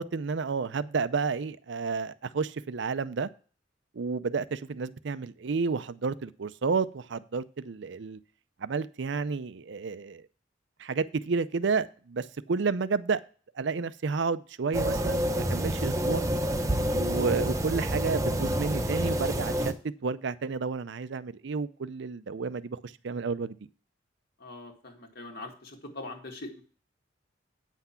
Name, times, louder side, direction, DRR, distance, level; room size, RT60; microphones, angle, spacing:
voice 1, 0.0-3.3 3.9-8.2 8.6-10.2 10.8-13.2 13.6-16.3 16.9-19.7 20.0-23.6, right 4 dB, 65° right, 0.5 m, -31 dB
sound 1, 14.7-19.7, equal, 15° right, 0.8 m, -28 dB
voice 2, 24.4-26.6, left 2 dB, 55° left, 1.9 m, -42 dB
9.1 x 6.0 x 5.7 m
head